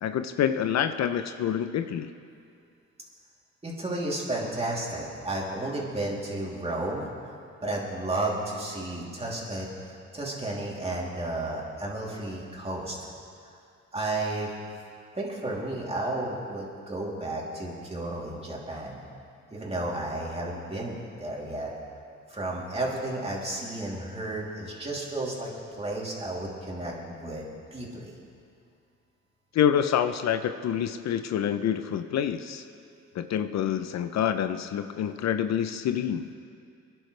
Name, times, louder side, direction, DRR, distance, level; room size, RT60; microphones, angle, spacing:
voice 1, 0.0-2.1 29.5-32.6 33.2-36.3, left 9 dB, 65° left, 9 dB, 0.6 m, -27 dB
voice 2, 3.6-7.1 7.6-13.0 13.9-14.5 15.1-19.0 19.5-21.7 22.3-27.5 27.7-28.1, right 2 dB, 20° right, -4 dB, 3.1 m, -32 dB
25.0 x 10.5 x 3.3 m, 2.4 s
cardioid pair, 90°, 30 cm